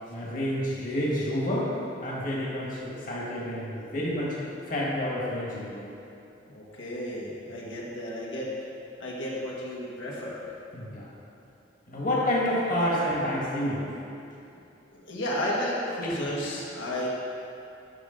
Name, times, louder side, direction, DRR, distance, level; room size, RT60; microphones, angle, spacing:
voice 1, 0.1-1.7 2.0-4.3 4.7-5.9 10.7-11.1 11.9-13.9, left 1 dB, 45° left, -5 dB, 1.7 m, -29 dB
voice 2, 6.5-8.5 9.0-10.5 14.9-17.1, left 1 dB, 80° left, -5 dB, 1.7 m, -32 dB
12.0 x 6.4 x 3.9 m, 2.7 s
head